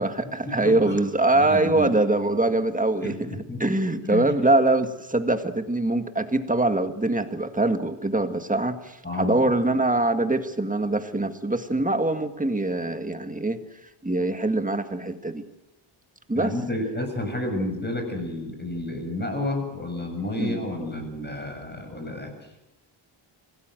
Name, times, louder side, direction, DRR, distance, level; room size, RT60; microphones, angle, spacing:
voice 1, 0.0-13.6 14.0-15.4 16.3-16.5 20.4-20.6, right 2 dB, 15° right, 8 dB, 1.8 m, -23 dB
voice 2, 0.6-0.9 1.3-1.9 3.0-3.6 4.0-4.3 9.0-9.5 16.3-22.3, left 1 dB, 20° left, 4 dB, 7.3 m, -30 dB
26.0 x 18.5 x 7.9 m, 0.90 s
wide cardioid pair, 135°, 49 cm